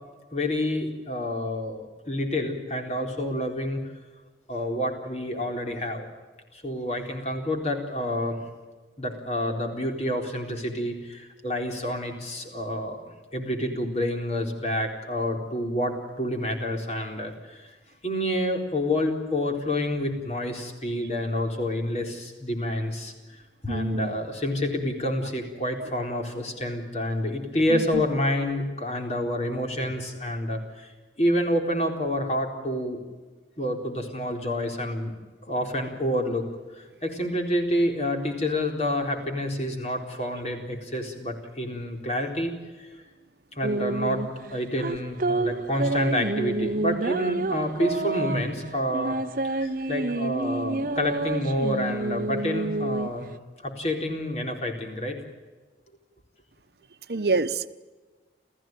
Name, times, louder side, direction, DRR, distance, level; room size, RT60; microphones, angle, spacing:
voice 1, 0.3-3.8 4.5-6.1 6.5-8.4 9.0-17.7 18.0-30.9 31.2-33.0 33.6-35.1 35.4-36.5 36.7-42.9 43.6-49.2 49.6-53.3 53.6-55.2, left 1 dB, 35° left, 3 dB, 4.0 m, -28 dB
voice 2, 23.7-24.1 27.7-28.0 57.1-57.7, right 3 dB, 65° right, 13 dB, 1.0 m, -26 dB
sound 1, 43.6-53.4, right 2 dB, 50° right, 0.7 m, -29 dB
29.0 x 15.0 x 9.2 m, 1.3 s
head